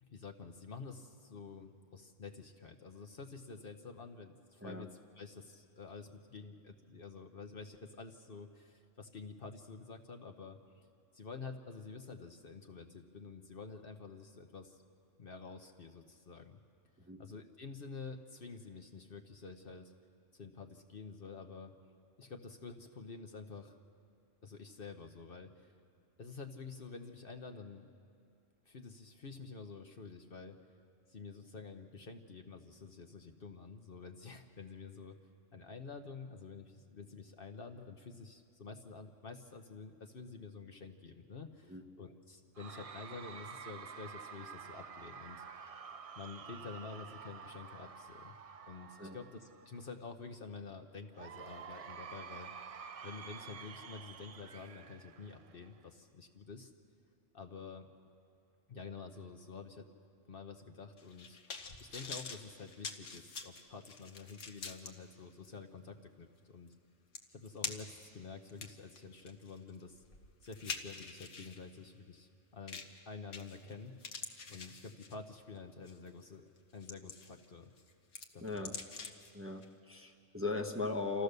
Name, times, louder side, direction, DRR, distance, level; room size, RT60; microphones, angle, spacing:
voice 1, 0.0-4.9 5.2-10.8 11.1-14.8 15.2-16.6 17.2-19.9 20.3-21.7 22.2-23.8 24.4-25.7 26.2-27.9 28.7-30.6 31.1-35.2 35.5-45.4 46.2-48.4 48.7-52.5 53.0-56.7 57.3-57.9 58.7-59.9 60.3-61.4 61.8-66.7 67.3-70.0 70.4-76.4 76.7-77.7 78.3-78.8, left 4 dB, 50° left, 5 dB, 1.1 m, -49 dB
Cheering / Crowd, 42.6-49.9 51.1-55.9, right 6 dB, 55° right, 0.4 m, -50 dB
sound 1, 61.0-64.9 65.4-65.5 66.7-66.8 67.1-68.0 68.5-71.6 72.7-73.0 73.3-73.7 74.0-75.3 75.9-76.1 76.6-77.4 77.8-79.3 79.6-79.7, left 4 dB, 70° left, 1.4 m, -45 dB
voice 2, 78.4-78.7 79.3-81.2, left 3 dB, 10° right, 1 dB, 0.9 m, -38 dB
28.0 x 14.5 x 6.7 m, 2.5 s
omnidirectional pair, 1.3 m